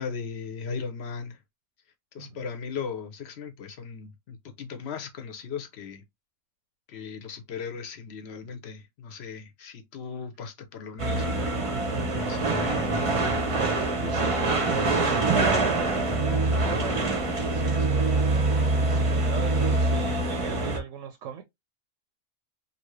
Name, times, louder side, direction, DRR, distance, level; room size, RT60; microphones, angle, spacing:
voice 1, 0.0-1.4 2.1-6.0 6.9-11.7 12.2-13.2, left 6 dB, 60° left, 0.9 m, -37 dB
sound 1, 11.0-20.8, right 2 dB, 35° right, 0.6 m, -25 dB
sound 2, 11.8-17.2, left 4 dB, 45° left, 0.5 m, -39 dB
voice 2, 14.0-16.0 16.6-18.2 18.7-21.4, right 7 dB, 80° right, 1.0 m, -38 dB
2.8 x 2.6 x 3.0 m
omnidirectional pair, 1.3 m